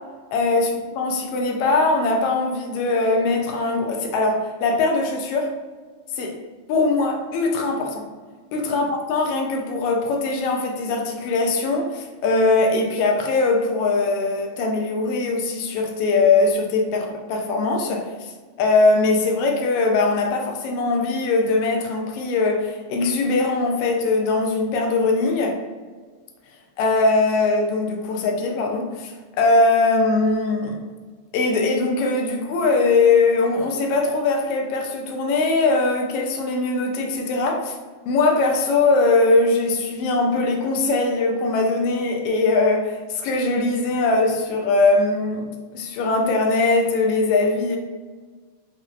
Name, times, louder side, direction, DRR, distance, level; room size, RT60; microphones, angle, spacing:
voice 1, 0.3-5.5 6.2-6.4 6.7-8.1 8.5-18.3 18.6-25.6 26.8-30.8 31.3-37.6 38.1-47.8, left 3 dB, 75° left, 1 dB, 1.4 m, -21 dB
5.7 x 2.9 x 2.4 m, 1.4 s
omnidirectional pair, 3.4 m